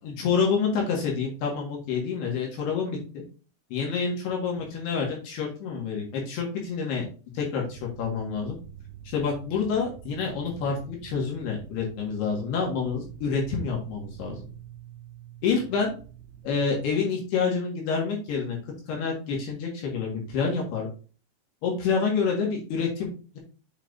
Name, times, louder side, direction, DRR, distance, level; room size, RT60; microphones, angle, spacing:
voice 1, 0.0-3.2 3.7-7.1 7.3-8.6 9.1-14.5 15.4-15.9 16.4-18.6 18.9-20.9 21.6-23.4, left 5 dB, 70° left, -1 dB, 3.7 m, -28 dB
sound 1, 7.7-17.1, right 10 dB, 85° right, 1.9 m, -46 dB
7.8 x 5.9 x 2.7 m, 0.36 s
omnidirectional pair, 5.0 m